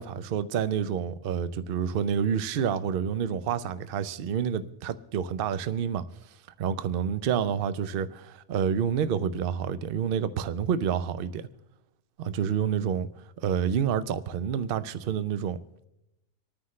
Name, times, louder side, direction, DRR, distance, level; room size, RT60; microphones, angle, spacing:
voice 1, 0.0-6.0 6.6-11.4 12.2-13.1 13.4-15.6, right 8 dB, 65° right, 0.5 m, -28 dB
27.0 x 9.5 x 3.2 m
omnidirectional pair, 1.7 m